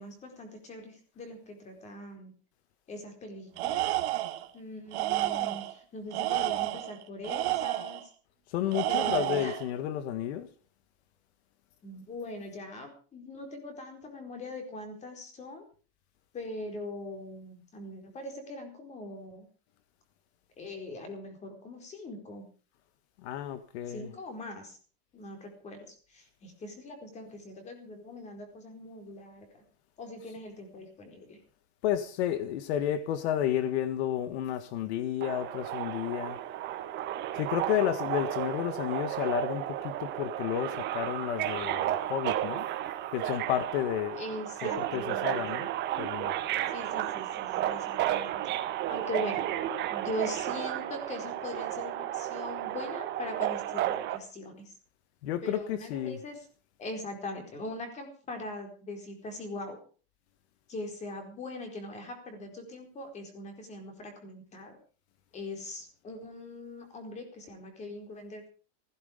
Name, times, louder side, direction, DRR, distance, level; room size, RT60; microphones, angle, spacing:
voice 1, 0.0-2.3 2.9-3.9 4.5-8.1 8.9-9.6 11.8-15.6 16.3-19.5 20.6-22.5 23.9-24.8 25.1-29.6 30.0-31.4 44.2-45.4 46.7-48.4 48.9-49.5 49.9-54.8 55.4-56.4 56.8-59.8 60.7-64.8 65.3-68.5, left 1 dB, 20° left, 4.4 m, -41 dB
Tools, 3.6-4.5 4.9-5.7 6.1-8.0 8.7-9.6, right 15 dB, 75° right, 2.2 m, -30 dB
voice 2, 8.5-10.5 23.2-24.1 31.8-36.4 37.3-42.6 43.1-44.2 44.6-45.7 46.0-46.3 55.2-56.2, left 10 dB, 75° left, 1.6 m, -31 dB
Subway metro underground, 35.2-54.2, right 12 dB, 30° right, 1.6 m, -33 dB
16.0 x 15.5 x 5.2 m
supercardioid pair, 170°, 33 cm